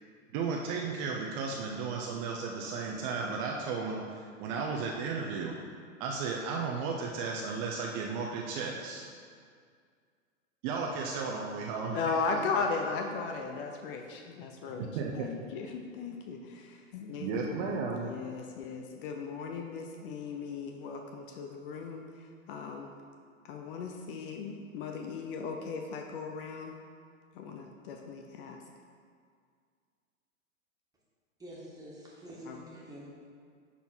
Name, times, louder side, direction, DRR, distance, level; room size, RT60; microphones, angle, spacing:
voice 1, 0.3-5.5 6.0-9.1 10.6-12.4 15.0-15.3 17.2-18.1, right 4 dB, 40° right, -1 dB, 0.7 m, -34 dB
voice 2, 11.9-14.9 15.1-22.9 23.4-26.8 27.3-28.6 32.5-32.6, left 4 dB, 45° left, 3 dB, 0.7 m, -37 dB
voice 3, 31.4-33.3, equal, 10° right, -6 dB, 2.1 m, -47 dB
10.5 x 4.2 x 4.5 m, 2.1 s
hypercardioid pair, 125°, 39 cm